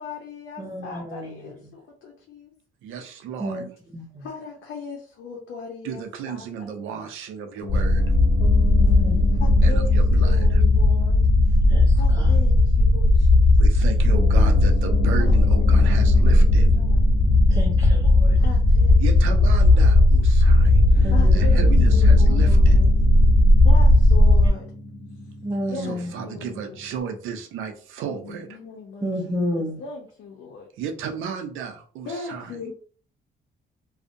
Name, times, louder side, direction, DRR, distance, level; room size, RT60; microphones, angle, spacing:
voice 1, 0.0-2.5 4.2-6.7 8.3-8.4 9.4-11.2 11.5-11.6 11.9-13.4 15.2-15.9 16.3-16.4 16.8-17.0 18.4-19.0 19.4-20.1 21.1-22.9 23.6-24.7 25.7-26.8 28.1-30.7 32.1-32.7, left 4 dB, 75° left, -1 dB, 0.6 m, -39 dB
voice 2, 0.6-1.7 3.4-3.7 3.9-4.3 8.5-9.4 11.7-12.4 17.5-18.4 21.0-21.4 25.4-26.1 29.0-29.8, equal, 20° right, -1 dB, 0.5 m, -31 dB
voice 3, 2.8-3.7 5.8-8.1 9.6-10.6 13.6-16.7 19.0-22.9 25.7-28.6 30.8-32.6, right 7 dB, 85° right, 5 dB, 0.5 m, -34 dB
Piano, 7.6-27.0, left 3 dB, 50° left, 1.1 m, -36 dB
sound 1, 7.7-24.5, left 2 dB, 35° left, 0.4 m, -16 dB
2.6 x 2.1 x 2.5 m, 0.43 s
cardioid pair, 90°, 20 cm